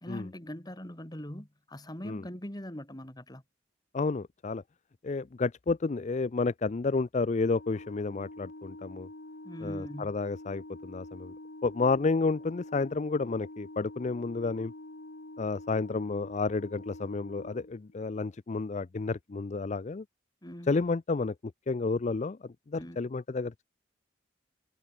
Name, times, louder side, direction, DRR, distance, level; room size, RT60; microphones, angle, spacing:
voice 1, 0.0-3.4 9.4-10.2 20.4-20.7 22.8-23.0, equal, 20° left, 2.5 m, -41 dB
voice 2, 3.9-4.6 5.0-9.1 9.6-11.3 11.6-14.7 15.4-20.0 20.6-21.3 21.7-23.6, left 3 dB, 40° left, 0.4 m, -31 dB
Organ, 7.4-18.2, left 1 dB, 70° left, 2.3 m, -46 dB
head